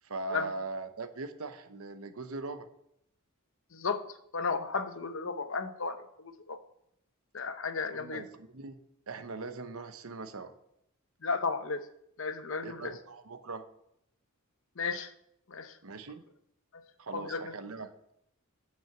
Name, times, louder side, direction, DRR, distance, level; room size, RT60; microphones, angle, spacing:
voice 1, 0.0-2.7 7.9-8.8 9.1-10.5 12.6-13.6 15.8-16.2 17.0-17.9, right 3 dB, 80° right, 9 dB, 0.9 m, -40 dB
voice 2, 3.7-4.0 4.3-6.6 7.3-8.3 11.2-11.8 12.2-12.9 14.8-15.1 15.5-15.8 16.7-16.8 17.1-17.5, left 4 dB, 65° left, 10 dB, 0.8 m, -34 dB
7.5 x 6.3 x 7.1 m, 0.76 s
head